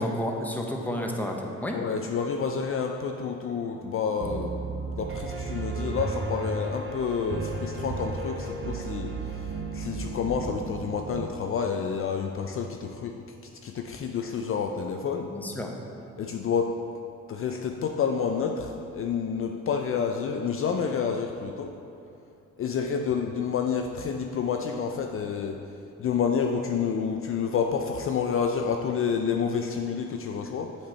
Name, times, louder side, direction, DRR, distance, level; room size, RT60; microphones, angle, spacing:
voice 1, 0.0-1.8 15.3-15.7, equal, 5° left, 1 dB, 0.7 m, -31 dB
voice 2, 1.7-9.5 9.7-13.2 13.6-15.3 16.2-16.8 17.3-21.7 22.6-25.6 26.0-30.8, left 6 dB, 45° left, 4 dB, 0.4 m, -29 dB
Piano, 4.2-11.3, right 4 dB, 40° right, 0.6 m, -34 dB
7.4 x 4.4 x 4.3 m, 2.7 s
cardioid pair, 90°, 30 cm